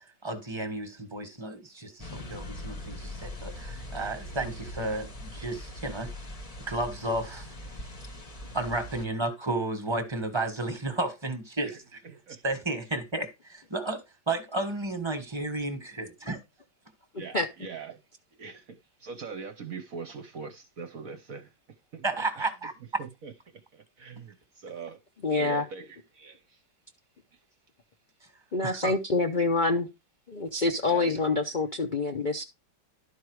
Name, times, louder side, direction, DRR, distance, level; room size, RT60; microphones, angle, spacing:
voice 1, 0.0-6.1 6.7-7.5 8.5-12.0 12.4-16.4 22.0-23.0 28.6-28.9, right 2 dB, 15° right, 1.3 m, -32 dB
sound 1, 2.0-9.1, left 1 dB, 25° left, 0.8 m, -41 dB
voice 2, 12.0-12.4 17.1-18.0 18.4-21.5 21.9-22.0 22.4-22.5 23.0-25.0 25.3-26.6 30.9-31.2, right 5 dB, 55° right, 1.1 m, -42 dB
voice 3, 25.2-25.7 28.5-29.9 30.3-32.4, left 3 dB, 75° left, 0.4 m, -26 dB
12.0 x 4.7 x 4.7 m
omnidirectional pair, 2.1 m